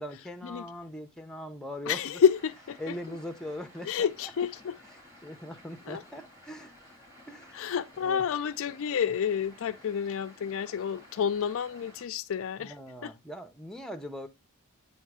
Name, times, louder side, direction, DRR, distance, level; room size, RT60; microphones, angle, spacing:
voice 1, 0.0-2.0 2.8-4.1 5.2-6.7 7.3-7.6 8.0-8.2 12.6-14.3, left 1 dB, 5° left, 0.7 m, -40 dB
voice 2, 1.9-3.2 3.8-4.8 5.9-6.0 7.5-12.7 13.0-13.1, left 7 dB, 65° left, 0.4 m, -29 dB
sound 1, 2.2-12.0, equal, 15° right, 2.3 m, -54 dB
9.1 x 3.1 x 4.8 m
head